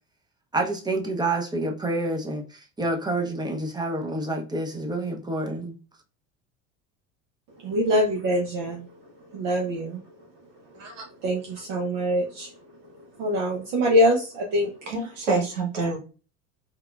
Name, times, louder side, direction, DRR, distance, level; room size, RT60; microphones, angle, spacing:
voice 1, 0.5-5.7, right 2 dB, 10° right, 0.6 m, -28 dB
voice 2, 7.6-8.9 9.3-10.0 11.2-12.5 13.2-14.7, equal, 60° right, 0.8 m, -24 dB
voice 3, 14.9-16.0, right 3 dB, 85° right, 1.0 m, -27 dB
3.4 x 2.3 x 2.3 m
hypercardioid pair, 70°, 37 cm